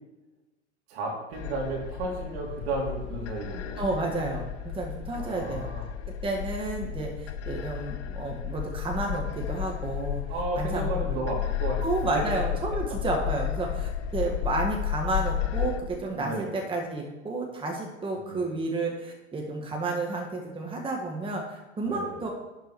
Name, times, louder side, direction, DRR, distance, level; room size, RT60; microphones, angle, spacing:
voice 1, 0.9-3.9 5.2-5.8 10.3-11.8 12.1-12.2 12.7-13.0 16.1-16.5 18.2-18.5 21.8-22.2, right 2 dB, 65° right, -1 dB, 3.1 m, -33 dB
sound 1, 1.3-15.8, left 10 dB, 40° left, 0.9 m, -33 dB
voice 2, 3.8-5.7 6.2-10.2 10.6-11.2 11.8-22.3, right 2 dB, 15° right, 0 dB, 1.8 m, -31 dB
11.5 x 4.7 x 4.7 m, 1.1 s
hypercardioid pair, 90°, 35 cm